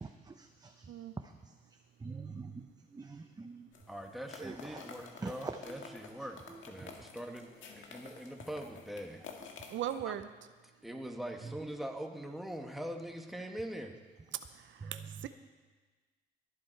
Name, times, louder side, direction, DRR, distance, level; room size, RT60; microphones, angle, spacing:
voice 1, 0.0-0.9 1.2-1.5 2.0-2.7 2.9-3.7 4.4-4.8 5.2-5.5 6.8-7.0 14.8-15.0, right 4 dB, 20° right, 5 dB, 0.7 m, -44 dB
sound 1, 3.7-10.0, left 6 dB, 75° left, 1.7 m, -51 dB
voice 2, 3.9-9.3 10.0-10.1 10.8-14.0, right 1 dB, ahead, 2 dB, 1.6 m, -43 dB
voice 3, 9.7-10.3 14.5-15.3, right 11 dB, 70° right, 11 dB, 0.6 m, -39 dB
22.5 x 7.6 x 4.6 m, 1.4 s
cardioid pair, 90°, 20 cm